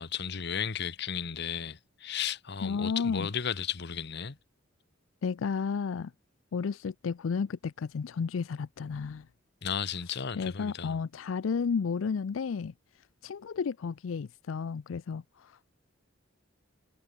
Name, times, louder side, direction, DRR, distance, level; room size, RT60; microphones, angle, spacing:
voice 1, 0.0-4.4 9.6-11.0, left 7 dB, 60° left, 0.9 m, -34 dB
voice 2, 2.6-3.3 5.2-6.1 6.5-9.3 10.4-12.7 13.2-15.7, left 5 dB, 85° left, 0.4 m, -32 dB
head